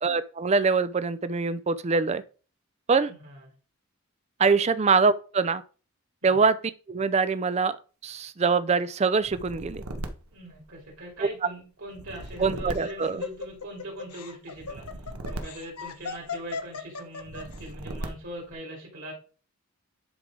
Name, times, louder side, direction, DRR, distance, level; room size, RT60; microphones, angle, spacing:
voice 1, 0.0-2.2 2.9-3.1 4.4-5.6 6.2-6.6 6.9-9.8 12.4-13.2, right 4 dB, 30° right, 0.4 m, -24 dB
voice 2, 3.1-3.4 4.6-4.7 6.2-6.4 10.3-19.1, right 1 dB, 60° right, 3.1 m, -41 dB
sound 1, 9.2-11.2 11.9-13.8 14.5-16.5 17.2-18.5, right 1 dB, 80° right, 1.2 m, -39 dB
Laughter, 12.1-17.6, left 5 dB, 90° left, 1.0 m, -37 dB
10.5 x 4.8 x 3.7 m
head